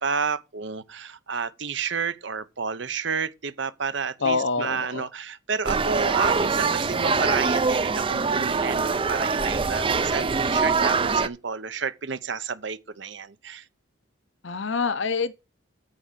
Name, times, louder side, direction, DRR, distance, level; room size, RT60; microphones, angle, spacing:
voice 1, 0.0-13.6, right 5 dB, 65° right, 0.8 m, -31 dB
voice 2, 4.2-5.0 14.4-15.3, left 4 dB, 70° left, 0.8 m, -26 dB
sound 1, 5.6-11.3, right 4 dB, 25° right, 0.5 m, -23 dB
9.0 x 5.1 x 7.3 m
head